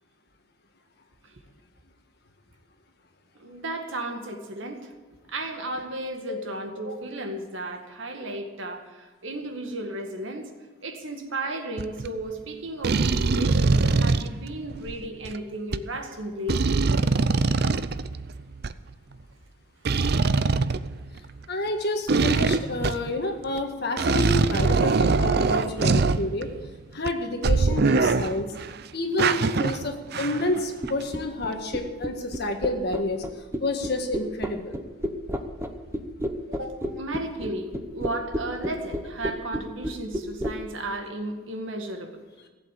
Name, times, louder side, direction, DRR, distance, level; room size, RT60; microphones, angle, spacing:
voice 1, 3.4-4.9 5.3-10.5 10.8-16.8 36.5-42.2, right 1 dB, 70° right, 4 dB, 1.9 m, -34 dB
sound 1, 11.8-12.1 12.8-15.4 15.7-15.8 16.5-18.7 19.9-21.4 22.1-23.2 23.6-23.7 24.0-26.7 27.1-27.2 27.4-28.7 29.2-30.6 30.9-31.0, right 3 dB, 50° right, 0.5 m, -23 dB
voice 2, 21.5-26.5 26.9-28.5 28.9-34.8, left 2 dB, 50° left, 4 dB, 1.7 m, -29 dB
sound 2, 30.8-40.6, equal, 10° right, 0.9 m, -31 dB
15.5 x 8.3 x 8.5 m, 1.2 s
head